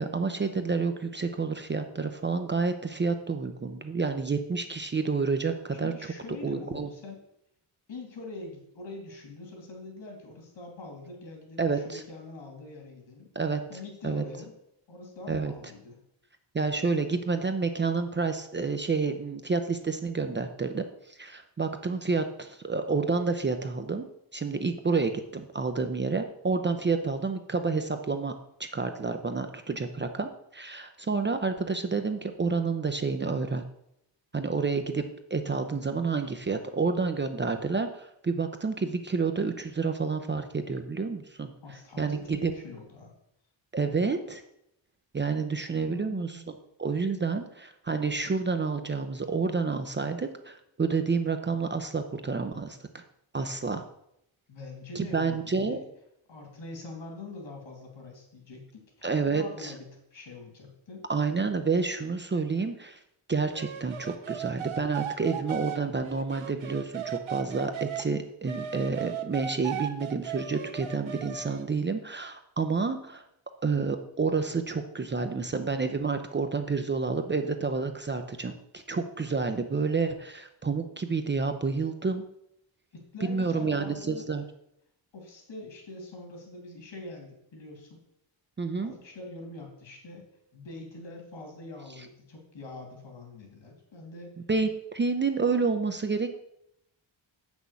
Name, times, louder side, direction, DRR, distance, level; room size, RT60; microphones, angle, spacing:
voice 1, 0.0-5.9 6.4-6.9 11.6-12.0 13.4-13.6 14.0-14.2 15.3-15.5 16.5-24.1 24.3-28.3 28.6-33.6 34.3-35.0 35.3-41.5 42.0-42.5 43.7-44.4 45.1-46.4 46.8-52.8 53.3-53.8 54.9-55.8 59.0-59.7 61.1-63.0 63.3-73.2 73.6-82.2 83.3-84.4 88.6-88.9 94.5-96.3, right 4 dB, 25° right, 7 dB, 0.6 m, -29 dB
voice 2, 5.8-7.2 7.9-13.3 13.7-14.5 14.9-16.0 41.6-43.1 45.4-46.5 54.5-55.8 56.3-61.0 82.9-84.3 85.1-88.0 88.8-90.2 90.5-94.3, left 3 dB, 70° left, 2 dB, 3.3 m, -44 dB
sound 1, 63.5-68.1 68.5-71.7, right 9 dB, 85° right, 1.0 m, -37 dB
7.7 x 6.2 x 6.9 m, 0.78 s
wide cardioid pair, 155°, 47 cm